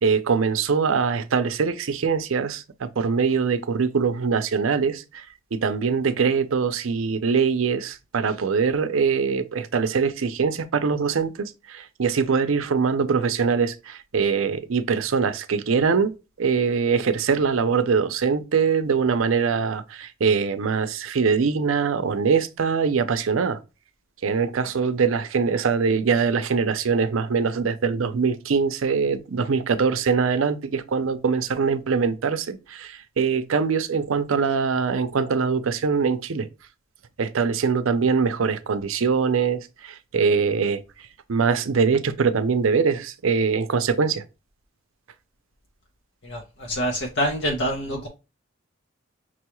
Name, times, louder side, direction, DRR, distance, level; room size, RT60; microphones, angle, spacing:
voice 1, 0.0-16.1 16.4-23.6 24.2-36.5 37.2-40.8 41.3-44.2, right 5 dB, 75° right, 0.5 m, -23 dB
voice 2, 46.2-48.1, equal, 55° left, 0.7 m, -26 dB
6.0 x 2.3 x 3.0 m
head